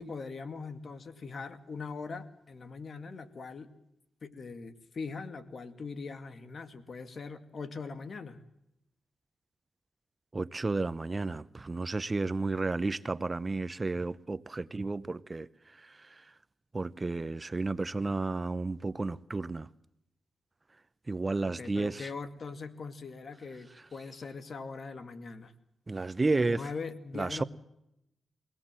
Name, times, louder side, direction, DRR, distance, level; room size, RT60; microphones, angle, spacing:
voice 1, 0.0-3.7 4.2-8.4 21.4-25.5 26.5-27.4, left 4 dB, 55° left, 2.2 m, -41 dB
voice 2, 10.3-16.3 16.7-19.7 21.1-22.1 23.7-23.8 25.9-26.7 27.1-27.4, right 3 dB, 30° right, 0.7 m, -32 dB
23.5 x 18.0 x 7.6 m
cardioid pair, 70°, 0 cm